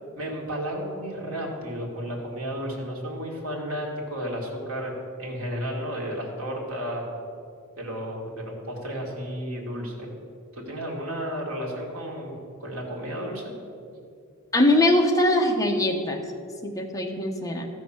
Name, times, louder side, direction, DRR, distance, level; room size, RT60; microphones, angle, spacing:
voice 1, 0.2-4.9 5.2-7.0 7.8-10.1 10.5-12.3 12.6-13.4, equal, 70° right, -2 dB, 2.5 m, -32 dB
voice 2, 14.5-16.2 16.6-17.7, left 1 dB, 15° left, 2 dB, 1.1 m, -22 dB
13.5 x 6.1 x 7.4 m, 2.4 s
head